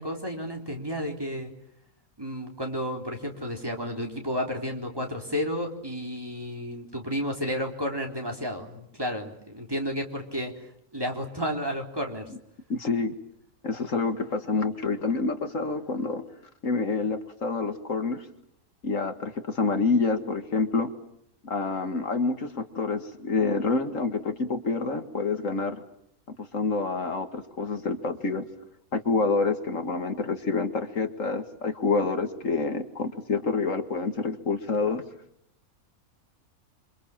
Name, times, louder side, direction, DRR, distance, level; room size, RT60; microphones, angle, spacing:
voice 1, 0.0-1.5 2.2-10.5 10.9-12.3, equal, 15° right, 2 dB, 3.8 m, -32 dB
voice 2, 12.7-13.1 13.6-16.2 16.6-18.3 18.8-20.9 21.4-25.8 26.4-28.4 28.9-35.0, left 4 dB, 65° left, 7 dB, 2.1 m, -27 dB
27.0 x 26.0 x 7.4 m, 0.76 s
omnidirectional pair, 1.5 m